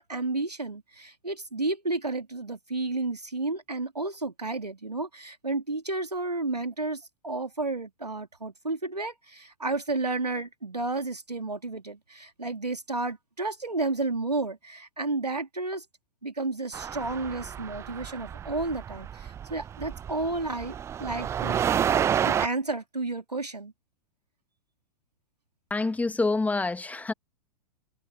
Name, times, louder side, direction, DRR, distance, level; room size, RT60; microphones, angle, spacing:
voice 1, 0.0-15.8 16.2-21.6 22.2-23.7, right 2 dB, 85° right, 3.1 m, -32 dB
sound 1, 16.7-22.5, right 9 dB, 15° right, 0.5 m, -30 dB
voice 2, 25.7-27.1, left 3 dB, 5° left, 2.4 m, -27 dB
figure-of-eight pair, 100°, 20 cm